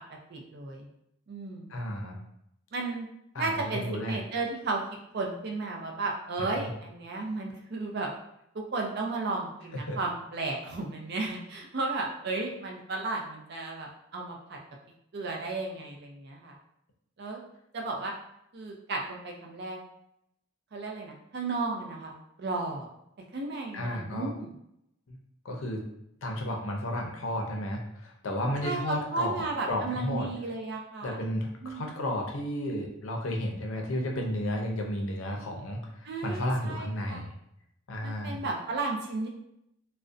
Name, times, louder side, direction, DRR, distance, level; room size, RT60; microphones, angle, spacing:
voice 1, 0.3-0.9 1.3-1.8 2.7-3.1 3.4-4.8 5.1-8.1 8.7-14.6 15.1-16.6 17.2-17.4 17.7-18.1 18.5-19.8 20.7-22.1 22.4-22.9 23.3-24.5 28.6-31.2 31.6-31.8 36.0-37.2 38.0-39.3, right 3 dB, 55° right, 1 dB, 0.5 m, -34 dB
voice 2, 1.7-2.2 3.3-4.2 6.5-6.7 9.9-10.0 23.7-24.3 25.1-25.2 25.4-25.8 26.2-30.3 31.0-37.3 37.9-38.4, left 1 dB, 80° left, 1 dB, 0.5 m, -33 dB
2.5 x 2.1 x 2.4 m, 0.77 s
head